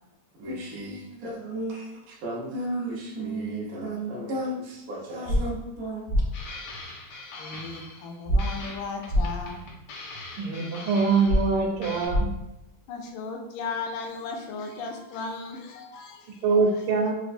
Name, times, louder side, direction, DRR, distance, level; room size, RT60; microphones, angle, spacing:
voice 1, 0.4-1.9 2.2-6.0, right 1 dB, 65° right, -4 dB, 0.9 m, -33 dB
sound 1, 5.2-5.4 6.1-6.2 8.2-8.4 9.1-9.2 11.3-11.4 12.1-12.2, equal, 55° left, 0.9 m, -22 dB
sound 2, 6.3-8.1 8.4-11.6 11.8-12.1, left 3 dB, 90° left, 1.6 m, -41 dB
voice 2, 7.4-9.7 12.9-16.6, left 4 dB, 75° left, 3 dB, 1.2 m, -36 dB
voice 3, 10.4-12.3 16.4-17.1, right 4 dB, 85° right, 1 dB, 1.5 m, -23 dB
4.1 x 2.4 x 2.5 m, 0.90 s
omnidirectional pair, 2.4 m